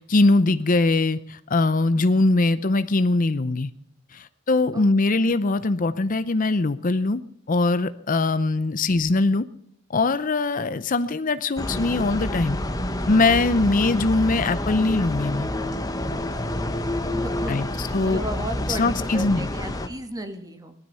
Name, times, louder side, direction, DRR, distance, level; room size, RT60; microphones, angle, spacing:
voice 1, 0.0-3.7 4.1-7.2 7.5-9.5 9.9-12.6 13.1-15.5 17.5-18.2 18.7-19.5, left 3 dB, 40° left, 13 dB, 0.6 m, -21 dB
voice 2, 4.7-5.3 17.1-20.7, right 1 dB, 20° right, 7 dB, 1.8 m, -35 dB
sound 1, 11.6-19.9, left 1 dB, 20° left, 1.1 m, -28 dB
19.0 x 12.5 x 5.6 m, 0.71 s
head